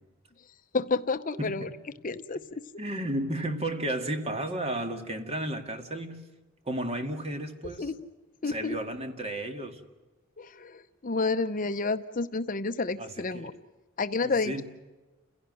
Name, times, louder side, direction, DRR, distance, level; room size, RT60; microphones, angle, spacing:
voice 1, 0.7-1.7 2.0-2.6 7.8-8.1 8.4-8.8 10.4-13.5 14.0-14.6, left 3 dB, 40° left, 11 dB, 0.7 m, -30 dB
voice 2, 2.8-6.2 6.7-7.9 8.5-9.8 13.0-13.5 14.2-14.6, right 1 dB, 30° right, 6 dB, 2.1 m, -33 dB
30.0 x 16.5 x 7.7 m, 1.2 s
head